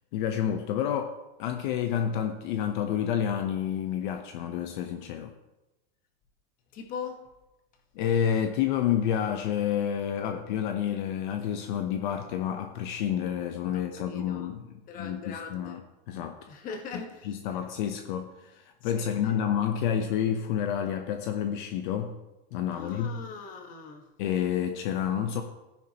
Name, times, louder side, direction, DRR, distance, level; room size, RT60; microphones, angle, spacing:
voice 1, 0.1-5.3 8.0-15.8 16.1-16.4 17.2-22.1 22.5-23.1 24.2-25.4, left 9 dB, 55° left, 5 dB, 0.9 m, -29 dB
voice 2, 6.7-7.2 13.7-14.5 14.9-15.8 16.5-17.6 18.8-19.5 22.7-24.1, left 5 dB, 30° left, 4 dB, 1.3 m, -41 dB
14.5 x 10.5 x 2.9 m, 1.0 s
supercardioid pair, 165°, 29 cm